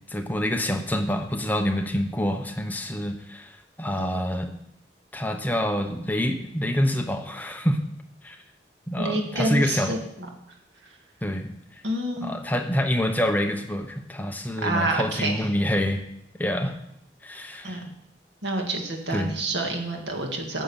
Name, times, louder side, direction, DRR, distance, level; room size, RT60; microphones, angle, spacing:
voice 1, 0.1-4.5 5.1-7.8 8.2-8.4 8.9-10.0 11.2-11.5 12.2-16.0 16.4-16.7 17.2-17.8 19.1-19.3, equal, 10° left, 5 dB, 0.8 m, -26 dB
voice 2, 9.0-10.3 11.8-12.3 14.6-15.5 17.6-17.8 18.4-20.6, right 1 dB, 90° right, 2 dB, 1.9 m, -28 dB
9.2 x 7.3 x 7.0 m, 0.76 s
head